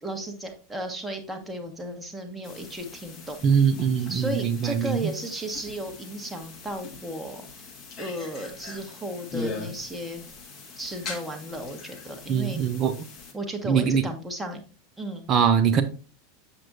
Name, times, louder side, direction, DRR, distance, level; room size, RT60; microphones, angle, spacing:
voice 1, 0.0-3.4 4.0-7.7 8.0-10.2 10.8-12.6 13.3-14.6 15.0-15.3, right 1 dB, 5° right, 3 dB, 1.4 m, -35 dB
sound 1, 2.4-13.3, left 4 dB, 40° left, 1.9 m, -41 dB
voice 2, 3.4-5.0 12.3-12.9 13.6-14.0 15.3-15.8, right 7 dB, 35° right, 7 dB, 0.7 m, -22 dB
7.6 x 6.0 x 2.7 m, 0.35 s
figure-of-eight pair, 85°, 0 cm